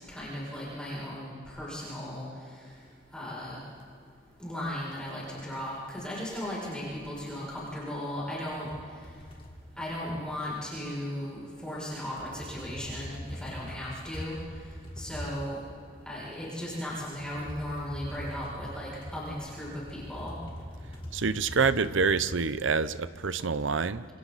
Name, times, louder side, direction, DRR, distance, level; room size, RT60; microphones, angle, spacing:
voice 1, 0.1-2.2 3.1-3.6 4.4-8.7 9.8-14.4 15.0-15.6 16.1-20.3, equal, 5° left, -7 dB, 6.6 m, -36 dB
sound 1, 2.7-5.1 5.4-6.0 6.4-11.2 11.5-22.4, equal, 30° left, 2.9 m, -44 dB
voice 2, 21.1-24.1, right 5 dB, 80° right, 15 dB, 0.8 m, -27 dB
27.5 x 26.5 x 4.1 m, 2.3 s
head